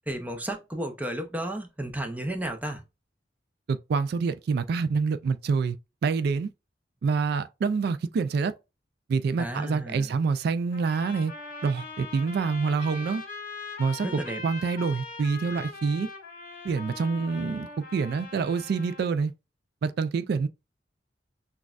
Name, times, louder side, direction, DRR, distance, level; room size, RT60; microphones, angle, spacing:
voice 1, 0.1-2.8 9.4-10.1 14.0-14.4, right 1 dB, 10° right, 0.6 m, -33 dB
voice 2, 3.7-5.8 6.0-6.5 7.0-8.5 9.1-11.3 11.6-13.2 13.8-14.1 14.4-16.1 16.6-19.3 19.8-20.5, right 5 dB, 60° right, 0.3 m, -26 dB
sound 1, 10.7-19.1, left 4 dB, 50° left, 1.2 m, -41 dB
6.1 x 2.3 x 2.4 m
head